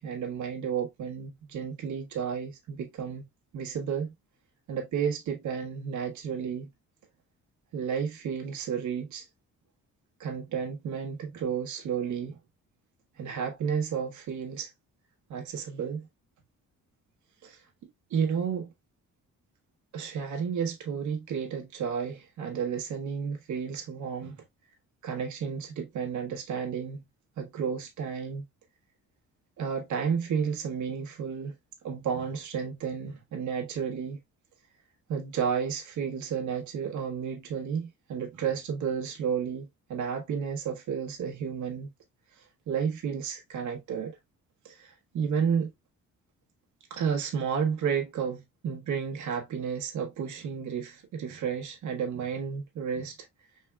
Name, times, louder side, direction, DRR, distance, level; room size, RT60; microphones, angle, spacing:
voice 1, 0.0-3.2 3.5-4.1 4.7-6.7 7.7-9.3 10.2-12.4 13.2-14.7 15.3-16.1 17.4-18.7 19.9-24.4 25.0-27.0 27.4-28.4 29.6-31.5 31.8-34.2 35.1-41.9 42.4-44.2 44.6-45.7 46.9-53.3, right 7 dB, 75° right, 1.4 m, -32 dB
5.3 x 3.8 x 2.3 m
cardioid pair, 90°, 30 cm